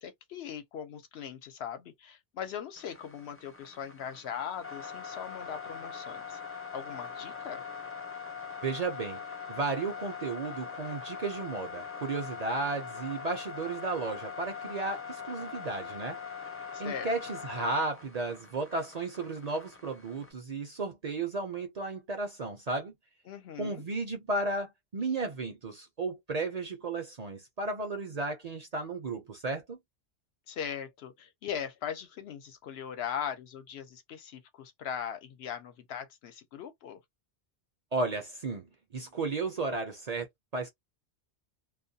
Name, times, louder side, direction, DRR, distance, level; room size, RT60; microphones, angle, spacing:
voice 1, 0.0-6.4 6.7-7.6 16.7-17.1 23.3-23.8 30.5-37.0, left 8 dB, 70° left, 0.8 m, -40 dB
sound 1, 2.8-20.3, left 6 dB, 20° left, 0.4 m, -42 dB
voice 2, 8.6-9.2 9.5-16.2 16.8-22.9 23.6-29.8 37.9-38.7 38.9-40.3 40.5-40.7, right 3 dB, 45° right, 0.6 m, -34 dB
2.3 x 2.2 x 2.7 m
omnidirectional pair, 1.1 m